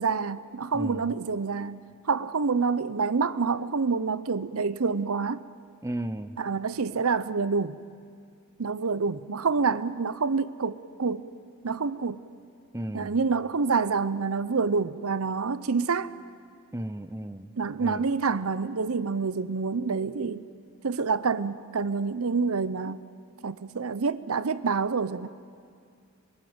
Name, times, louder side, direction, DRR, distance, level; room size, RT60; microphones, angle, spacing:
voice 1, 0.0-1.8 2.0-5.5 6.4-7.8 8.6-11.3 11.6-12.3 12.9-16.1 17.6-20.4 20.8-23.0 23.4-25.3, right 4 dB, 70° right, 0.7 m, -27 dB
voice 2, 0.7-1.1 5.8-6.4 12.7-13.2 16.7-17.5 17.8-18.1, right 1 dB, 15° right, 0.7 m, -34 dB
27.0 x 22.5 x 7.9 m
head